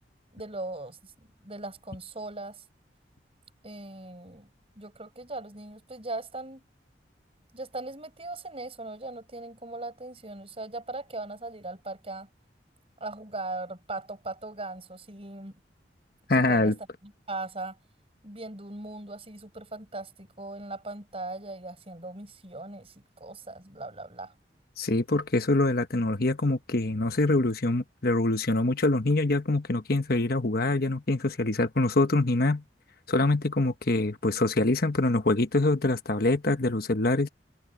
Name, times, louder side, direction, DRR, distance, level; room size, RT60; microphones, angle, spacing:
voice 1, 0.3-1.1 1.4-2.6 3.6-4.5 4.8-6.6 7.5-12.3 13.0-15.5 16.5-16.7 17.0-17.8 18.2-24.3, right 2 dB, 35° right, 6.0 m, -39 dB
voice 2, 16.3-16.8 24.8-32.6 33.1-37.3, left 2 dB, 55° left, 1.2 m, -25 dB
head